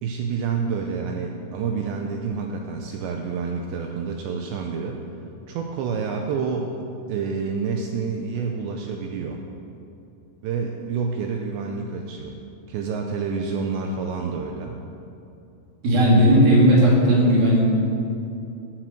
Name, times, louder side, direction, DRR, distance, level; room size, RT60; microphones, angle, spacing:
voice 1, 0.0-5.0 5.5-6.8 7.1-9.4 10.4-12.4 12.7-14.8, right 5 dB, 85° right, 2 dB, 2.6 m, -28 dB
voice 2, 15.8-17.6, equal, 55° right, -4 dB, 3.7 m, -16 dB
14.0 x 7.6 x 6.5 m, 2.7 s
omnidirectional pair, 5.7 m